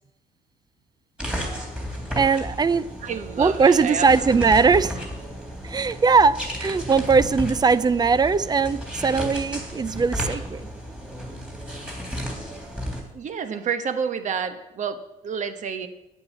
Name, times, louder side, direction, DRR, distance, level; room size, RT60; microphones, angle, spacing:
sound 1, 1.2-13.0, equal, 5° right, 3.3 m, -33 dB
voice 1, 2.2-2.8 3.4-4.9 5.6-10.7, right 5 dB, 25° right, 18 dB, 0.5 m, -20 dB
voice 2, 3.0-4.6 13.1-15.9, right 7 dB, 45° right, 9 dB, 1.2 m, -29 dB
9.8 x 8.5 x 7.5 m, 0.94 s
cardioid pair, 110°, 17 cm